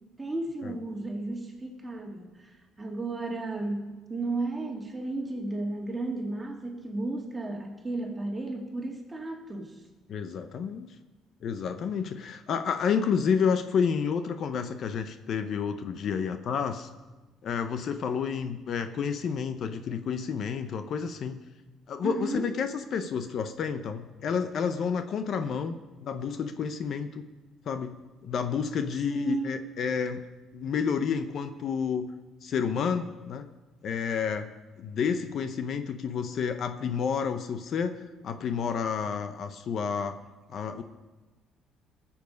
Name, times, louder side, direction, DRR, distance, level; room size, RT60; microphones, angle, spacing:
voice 1, 0.2-9.8 22.0-22.5 29.1-29.6, right 2 dB, 15° right, 0 dB, 2.2 m, -34 dB
voice 2, 10.1-10.9 11.4-16.9 17.4-21.4 21.9-27.2 27.7-30.2 30.5-32.1 32.4-33.5 33.8-34.5 34.8-40.2 40.5-40.8, left 6 dB, 55° left, 9 dB, 0.8 m, -30 dB
19.5 x 7.2 x 5.3 m, 1.2 s
cardioid pair, 120°, 0 cm